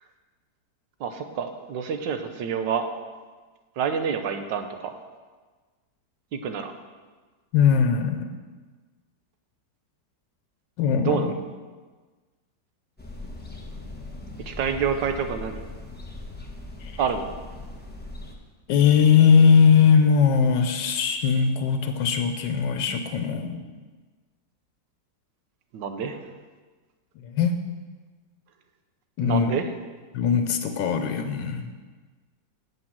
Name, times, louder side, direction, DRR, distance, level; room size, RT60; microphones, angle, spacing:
voice 1, 1.0-2.9 3.8-4.9 6.3-6.7 11.0-11.3 14.5-15.6 17.0-17.3 25.7-26.2 29.2-29.7, right 7 dB, 85° right, 7 dB, 1.5 m, -28 dB
voice 2, 7.5-8.3 10.8-11.3 16.8-17.0 18.7-23.7 27.2-27.6 29.2-29.5 30.1-31.7, left 6 dB, 85° left, 7 dB, 1.4 m, -20 dB
sound 1, 13.0-18.4, left 2 dB, 10° left, 0.7 m, -39 dB
8.2 x 5.9 x 7.3 m, 1.4 s
omnidirectional pair, 1.9 m